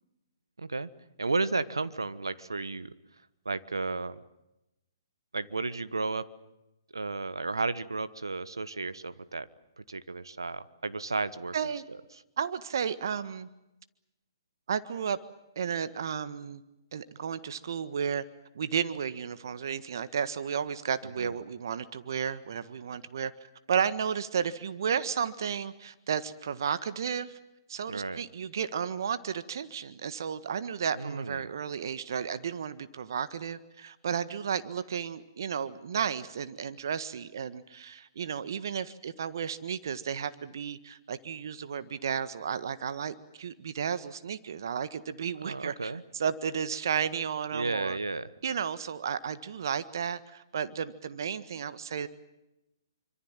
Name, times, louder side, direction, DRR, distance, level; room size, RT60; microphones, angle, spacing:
voice 1, 0.6-0.9 1.2-2.9 3.4-4.2 5.3-6.3 6.9-9.5 9.9-11.5 21.2-21.3 27.9-28.2 31.0-31.5 45.4-46.0 47.5-48.3, right 3 dB, 85° right, 14 dB, 1.4 m, -33 dB
voice 2, 11.5-11.8 12.4-13.5 14.7-15.2 15.5-16.6 16.9-18.2 18.5-23.3 23.7-27.4 27.7-48.0 48.4-52.1, right 7 dB, 60° right, 13 dB, 1.6 m, -33 dB
27.5 x 25.5 x 7.5 m, 0.93 s
figure-of-eight pair, 130°, 2 cm